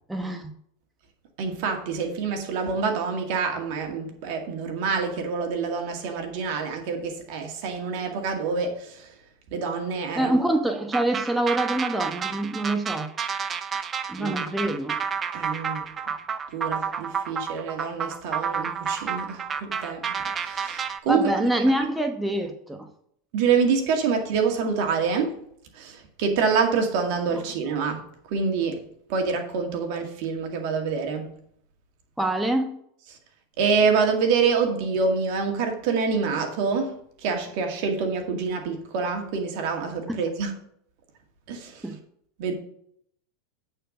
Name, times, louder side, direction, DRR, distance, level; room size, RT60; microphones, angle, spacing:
voice 1, 0.1-0.5 10.1-13.1 14.1-15.0 21.1-22.9 32.2-32.8 40.1-40.2 41.8-42.0, right 1 dB, 5° right, 1.0 m, -25 dB
voice 2, 1.4-9.2 9.5-10.4 14.2-14.4 15.3-15.9 16.5-21.5 23.3-25.4 25.7-28.0 28.3-28.8 29.1-31.3 33.1-33.2 33.6-40.5 41.5-41.9 42.4-42.5, right 5 dB, 60° right, 2.1 m, -26 dB
sound 1, 10.9-21.0, right 6 dB, 25° right, 0.7 m, -30 dB
8.7 x 4.6 x 6.5 m
hypercardioid pair, 100°, 0 cm